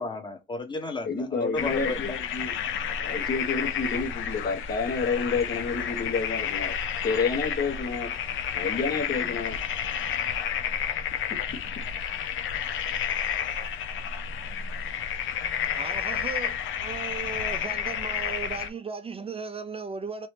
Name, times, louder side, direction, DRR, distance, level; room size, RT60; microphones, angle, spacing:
voice 1, 0.0-2.0, left 3 dB, 25° left, 1.1 m, -33 dB
voice 2, 1.0-2.6 3.0-6.7 7.0-8.1 8.5-9.5, left 4 dB, 50° left, 1.3 m, -29 dB
sound 1, 1.5-18.7, left 8 dB, 80° left, 0.6 m, -31 dB
voice 3, 15.7-20.3, right 5 dB, 30° right, 0.4 m, -36 dB
3.0 x 2.9 x 3.2 m
cardioid pair, 90°, 20 cm